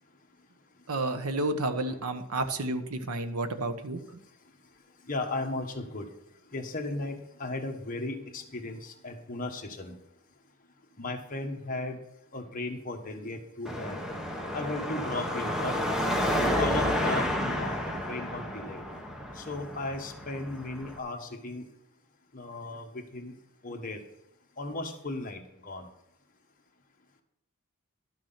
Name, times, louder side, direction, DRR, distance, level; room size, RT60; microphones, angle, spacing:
voice 1, 0.9-4.2 17.7-17.8, right 2 dB, 85° right, 8 dB, 1.0 m, -31 dB
voice 2, 5.1-6.1 6.5-10.0 11.0-12.0 12.3-14.1 14.5-15.8 16.4-18.8 19.3-21.6 22.3-23.3 23.6-24.0 24.6-25.8, left 2 dB, 40° left, 2 dB, 1.4 m, -36 dB
Car passing by / Traffic noise roadway noise / Engine, 13.7-21.0, equal, 5° right, 1.0 m, -31 dB
12.0 x 6.1 x 5.8 m, 0.83 s
head